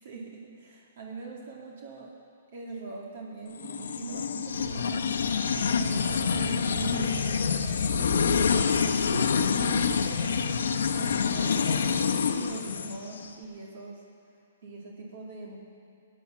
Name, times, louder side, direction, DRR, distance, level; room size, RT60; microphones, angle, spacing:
voice 1, 0.0-2.1 2.5-5.5 5.7-8.4 9.1-9.2 9.5-10.5 10.9-14.0 14.6-15.6, right 4 dB, 65° right, -2 dB, 2.5 m, -41 dB
sound 1, 3.6-13.3, left 6 dB, 80° left, 1.0 m, -26 dB
16.0 x 9.6 x 7.2 m, 2.5 s
hypercardioid pair, 140°, 0 cm